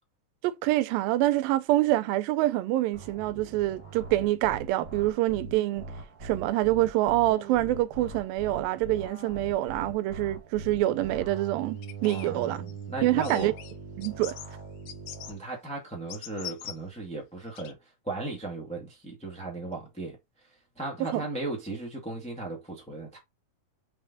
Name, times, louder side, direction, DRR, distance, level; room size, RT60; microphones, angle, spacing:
voice 1, 0.4-5.9 6.2-12.7 13.0-13.5 14.0-14.3 21.0-21.2, right 16 dB, 85° right, 2.4 m, -26 dB
sound 1, 2.9-15.3, right 4 dB, 35° right, 2.0 m, -42 dB
sound 2, 11.8-12.7 13.2-13.7 14.0-14.5 14.9-15.3 16.1-16.8 17.6-17.7, left 12 dB, 80° left, 2.4 m, -42 dB
voice 2, 12.0-13.5 15.3-17.8 18.0-20.2 20.8-23.2, right 2 dB, 5° left, 0.9 m, -36 dB
5.4 x 5.4 x 4.0 m
omnidirectional pair, 4.1 m